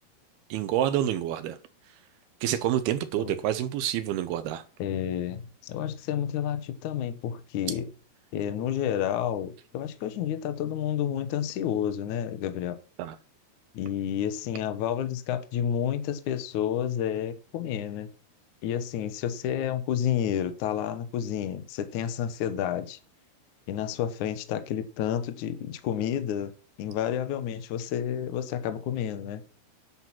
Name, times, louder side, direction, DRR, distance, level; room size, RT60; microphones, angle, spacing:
voice 1, 0.5-1.6 2.4-4.6 13.0-13.1, right 11 dB, 80° right, 2.7 m, -28 dB
voice 2, 4.8-7.9 8.3-12.8 13.7-18.1 18.6-23.0 23.7-26.5 26.8-29.4, left 9 dB, 70° left, 2.0 m, -30 dB
10.5 x 7.7 x 5.9 m
omnidirectional pair, 4.6 m